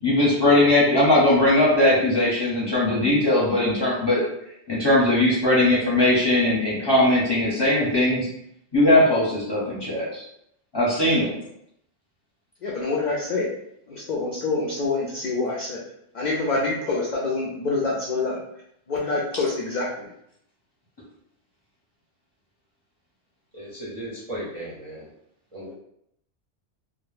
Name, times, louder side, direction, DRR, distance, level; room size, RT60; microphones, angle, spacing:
voice 1, 0.0-4.2 4.7-8.3 8.7-10.2 10.7-11.3, left 1 dB, 25° left, -7 dB, 0.7 m, -19 dB
voice 2, 12.6-13.5 13.9-15.8 16.1-18.4 18.9-20.1, left 3 dB, 60° left, -4 dB, 0.5 m, -26 dB
voice 3, 23.5-25.1 25.5-25.7, right 1 dB, 40° right, -6 dB, 0.5 m, -36 dB
2.1 x 2.1 x 3.1 m, 0.75 s
omnidirectional pair, 1.2 m